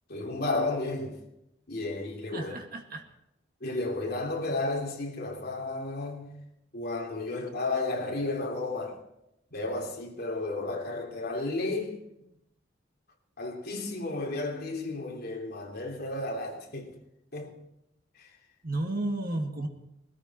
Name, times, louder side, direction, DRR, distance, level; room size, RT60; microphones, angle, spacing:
voice 1, 0.1-1.2 1.7-2.5 3.6-6.4 6.7-9.0 9.5-12.0 13.4-17.0 17.3-17.6 18.2-18.3, left 2 dB, 50° left, 3.1 m, -33 dB
voice 2, 2.3-3.0 18.6-19.7, right 2 dB, 50° right, 1.9 m, -32 dB
20.5 x 14.0 x 4.3 m
head